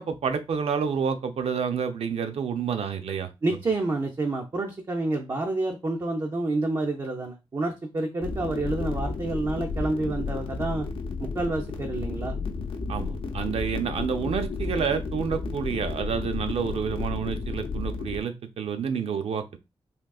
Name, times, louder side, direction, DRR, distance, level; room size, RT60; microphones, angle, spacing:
voice 1, 0.0-3.3 12.9-19.6, right 6 dB, 85° right, 7 dB, 0.5 m, -29 dB
voice 2, 3.4-10.9 11.2-12.4, right 2 dB, 35° right, 1 dB, 0.4 m, -28 dB
sound 1, 8.2-18.2, left 4 dB, 65° left, 0.5 m, -32 dB
3.6 x 2.7 x 2.3 m, 0.25 s
wide cardioid pair, 165°, 10 cm